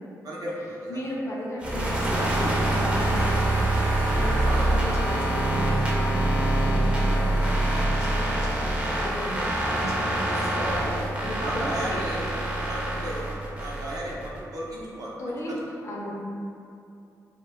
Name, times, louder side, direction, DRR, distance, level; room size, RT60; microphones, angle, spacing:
voice 1, 0.2-1.0 4.4-4.6 10.2-10.8 11.4-12.3 12.5-13.3 13.6-15.1 15.5-15.6, right 1 dB, 60° right, -5 dB, 0.6 m, -34 dB
voice 2, 0.9-12.0 15.2-15.5 15.8-16.3, equal, 45° left, -4 dB, 0.5 m, -35 dB
sound 1, 1.6-14.4, right 1 dB, 20° right, 0.5 m, -25 dB
2.2 x 2.1 x 3.4 m, 2.6 s
cardioid pair, 90°, 7 cm